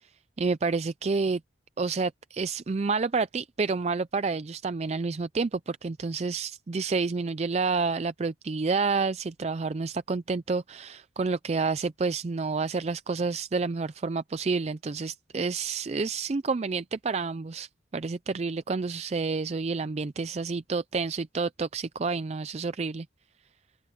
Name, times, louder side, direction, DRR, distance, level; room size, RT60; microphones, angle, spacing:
voice 1, 0.4-1.4 1.8-23.1, right 4 dB, 35° right, 0.4 m, -29 dB
open air
head